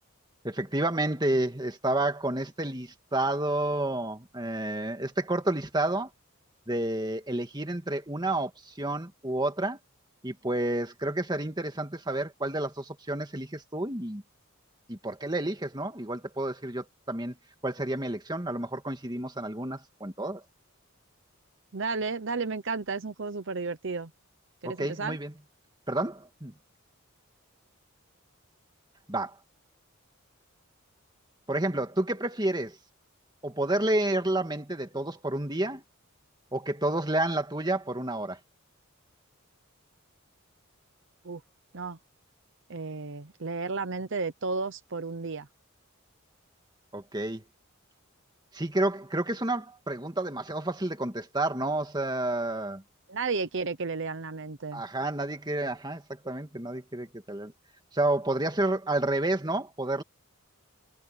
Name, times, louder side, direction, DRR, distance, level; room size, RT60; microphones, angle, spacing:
voice 1, 0.4-6.1 6.7-9.8 10.2-14.2 14.9-17.4 17.6-20.4 24.6-25.3 25.9-26.5 29.1-29.4 31.5-32.8 33.4-35.8 36.5-38.4 46.9-47.4 48.5-52.8 54.7-57.5 57.9-60.0, right 1 dB, 20° right, 1.9 m, -30 dB
voice 2, 21.7-24.1 24.6-25.2 41.2-41.4 41.7-42.0 42.7-45.5 53.1-54.8, right 4 dB, 60° right, 0.8 m, -33 dB
head